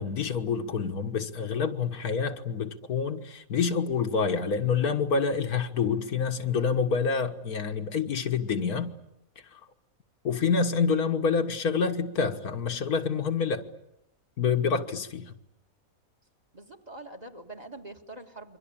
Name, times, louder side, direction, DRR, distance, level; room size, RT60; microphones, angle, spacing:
voice 1, 0.0-8.9 9.5-9.6 10.2-13.7 14.4-15.3, left 5 dB, 75° left, 1.9 m, -27 dB
voice 2, 16.5-18.6, right 2 dB, 25° right, 2.0 m, -44 dB
28.5 x 24.0 x 8.8 m
omnidirectional pair, 1.6 m